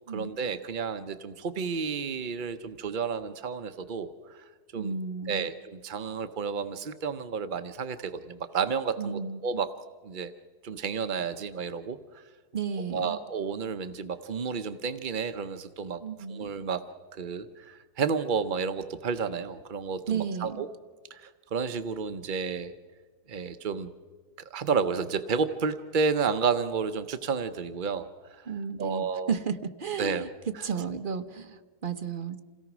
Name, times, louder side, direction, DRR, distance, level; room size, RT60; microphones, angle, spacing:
voice 1, 0.1-4.4 4.7-5.0 5.3-9.7 10.0-10.3 10.6-12.2 12.9-16.0 16.3-16.8 17.1-20.7 21.1-22.7 23.3-23.9 24.5-28.1 28.3-28.5 28.8-29.3 30.0-30.3 30.5-30.7, right 5 dB, 55° right, 10 dB, 0.5 m, -31 dB
voice 2, 4.7-5.5 9.0-9.4 12.5-13.2 16.0-16.5 20.1-20.6 28.5-32.4, right 6 dB, 40° right, 9 dB, 0.9 m, -33 dB
27.5 x 17.5 x 6.0 m, 1.5 s
omnidirectional pair, 1.7 m